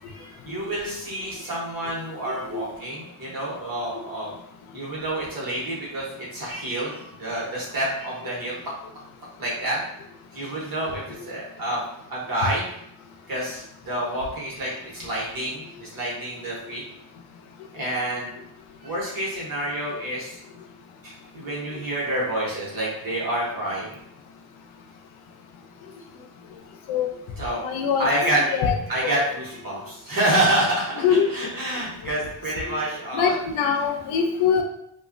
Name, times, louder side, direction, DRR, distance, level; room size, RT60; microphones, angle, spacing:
voice 1, 0.0-4.3 4.7-8.6 9.4-9.8 10.3-11.8 12.1-12.7 13.3-16.8 17.7-18.3 18.8-20.4 21.0-24.0 27.4-27.6 28.0-33.9, right 1 dB, 45° right, -5 dB, 1.0 m, -28 dB
voice 2, 27.6-28.1 28.5-28.7 29.0-29.2 31.0-31.5 33.1-34.6, left 7 dB, 85° left, 3 dB, 0.6 m, -23 dB
3.0 x 2.4 x 2.5 m, 0.75 s
wide cardioid pair, 180°, 47 cm